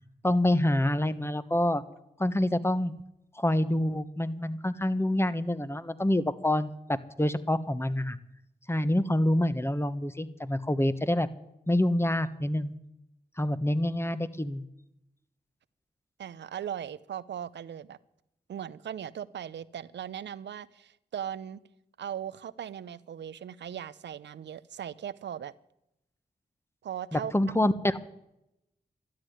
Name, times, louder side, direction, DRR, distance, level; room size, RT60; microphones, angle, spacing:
voice 1, 0.2-1.8 2.2-2.9 3.4-8.2 8.7-11.3 11.7-12.7 13.4-14.6 27.1-28.0, left 1 dB, 15° left, 13 dB, 1.3 m, -27 dB
voice 2, 16.2-18.0 18.5-21.6 22.0-25.5 26.8-27.3, right 9 dB, 90° right, 18 dB, 0.6 m, -38 dB
13.0 x 11.0 x 9.5 m, 0.84 s
cardioid pair, 45°, 18 cm